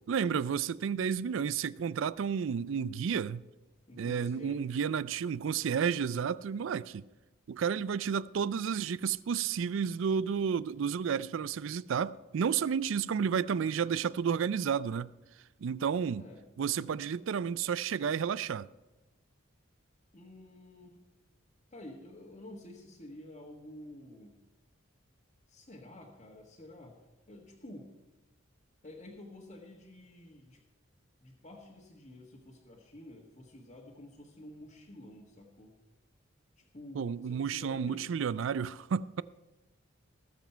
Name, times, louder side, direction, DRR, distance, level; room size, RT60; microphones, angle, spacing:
voice 1, 0.1-3.4 4.0-7.0 7.5-15.1 15.6-16.2 16.6-18.7 36.9-39.2, right 7 dB, 70° right, 0.4 m, -31 dB
voice 2, 3.9-4.8 16.2-16.5 20.1-20.9 21.7-24.4 25.5-27.0 27.3-27.9 28.8-30.6 31.2-35.7 36.6-38.0, left 1 dB, 35° left, 1.4 m, -50 dB
19.5 x 7.3 x 4.4 m
head